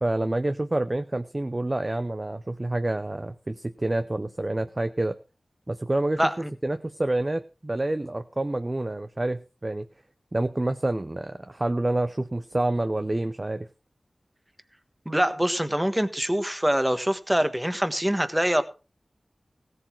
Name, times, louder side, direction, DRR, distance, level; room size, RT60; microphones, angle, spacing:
voice 1, 0.0-5.2 5.7-6.2 6.6-9.9 10.3-13.7, right 2 dB, 30° right, 10 dB, 0.7 m, -28 dB
voice 2, 6.2-6.5 15.0-18.6, equal, 10° right, 10 dB, 1.4 m, -24 dB
16.5 x 7.8 x 4.6 m, 0.33 s
wide cardioid pair, 75°, 0 cm